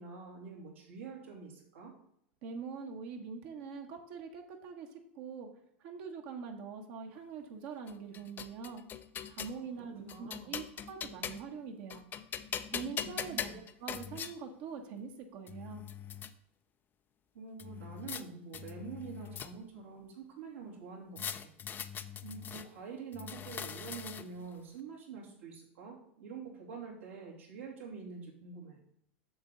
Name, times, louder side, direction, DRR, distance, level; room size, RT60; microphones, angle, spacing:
voice 1, 0.0-1.9 9.8-10.5 13.0-13.6 17.3-21.5 21.9-22.0 22.2-28.8, right 5 dB, 85° right, -3 dB, 2.9 m, -46 dB
voice 2, 2.4-5.5 5.8-8.8 9.3-12.0 12.7-15.8, right 5 dB, 55° right, 3 dB, 1.3 m, -44 dB
sound 1, 7.9-9.6 10.1-11.6 11.9-14.3 15.1-15.2 15.5-16.3 17.6-18.2 18.5-19.8 21.2-22.7 23.1-24.4, left 8 dB, 30° left, 0.5 m, -41 dB
7.0 x 6.8 x 3.9 m, 0.74 s
hypercardioid pair, 105°, 7 cm